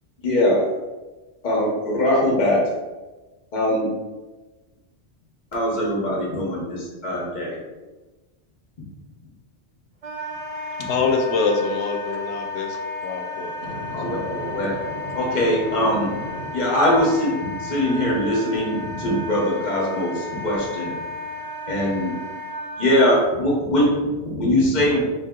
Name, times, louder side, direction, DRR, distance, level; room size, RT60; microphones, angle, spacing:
voice 1, 0.2-0.7 1.4-2.7 3.5-3.9 5.5-7.6 10.8-10.9 13.9-14.8 15.1-16.1 16.5-20.9 21.7-22.1 22.8-25.1, left 1 dB, 45° left, 1.1 m, -22 dB
Wind instrument woodwind instrument, 10.0-23.1, left 2 dB, 50° right, 0.4 m, -33 dB
voice 2, 10.9-13.5, left 4 dB, 80° left, 0.9 m, -24 dB
voice 3, 13.6-16.5, equal, 70° right, 1.3 m, -36 dB
3.4 x 2.7 x 3.6 m
omnidirectional pair, 1.1 m